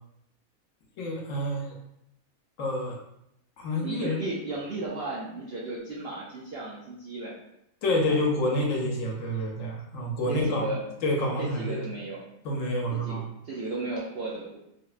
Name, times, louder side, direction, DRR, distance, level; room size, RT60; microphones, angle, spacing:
voice 1, 1.0-1.7 2.6-3.0 3.6-4.2 7.8-10.7 11.0-11.8 12.4-13.2, left 1 dB, 70° left, -1 dB, 0.9 m, -28 dB
voice 2, 3.8-7.3 8.0-8.2 10.3-10.8 11.4-12.2 12.9-14.6, right 2 dB, 70° right, -5 dB, 0.6 m, -35 dB
3.3 x 2.0 x 2.4 m, 0.79 s
omnidirectional pair, 1.5 m